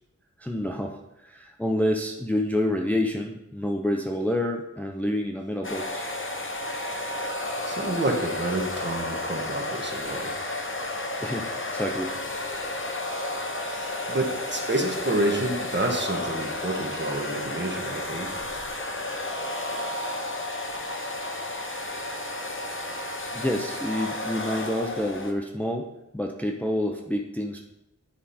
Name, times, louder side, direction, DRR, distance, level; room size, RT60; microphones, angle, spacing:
voice 1, 0.4-6.1 11.2-12.1 23.3-27.6, left 1 dB, 5° left, 2 dB, 0.6 m, -28 dB
sound 1, 5.6-25.3, left 2 dB, 40° left, 0.9 m, -32 dB
voice 2, 7.6-10.3 13.7-18.3, right 2 dB, 35° right, 1 dB, 1.4 m, -29 dB
9.6 x 5.0 x 4.2 m, 0.89 s
wide cardioid pair, 75°, 32 cm